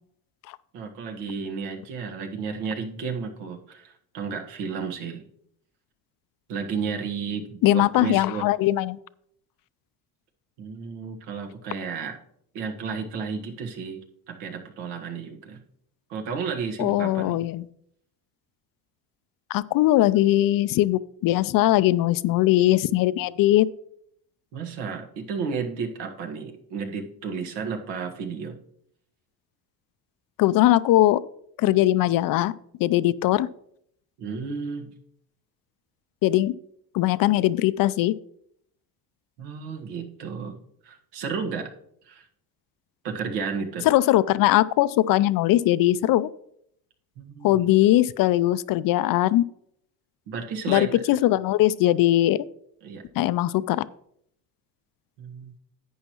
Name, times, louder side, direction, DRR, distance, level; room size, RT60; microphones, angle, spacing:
voice 1, 0.7-5.2 6.5-8.4 10.6-12.2 12.5-14.0 14.3-15.6 16.1-17.4 24.5-28.6 34.2-34.9 39.4-40.6 40.8-41.7 42.1-42.3 43.0-43.8 47.2-47.7 50.3-51.0 52.8-53.0 55.2-55.5, right 5 dB, 85° right, 3 dB, 1.6 m, -32 dB
voice 2, 7.6-9.0 16.8-17.6 19.5-23.7 30.4-31.2 31.6-32.5 32.8-33.5 36.2-36.5 36.9-38.1 43.8-46.3 47.4-49.4 50.7-52.4 53.2-53.8, left 15 dB, 55° left, 17 dB, 0.5 m, -20 dB
11.0 x 8.5 x 3.0 m, 0.70 s
supercardioid pair, 100°, 40 cm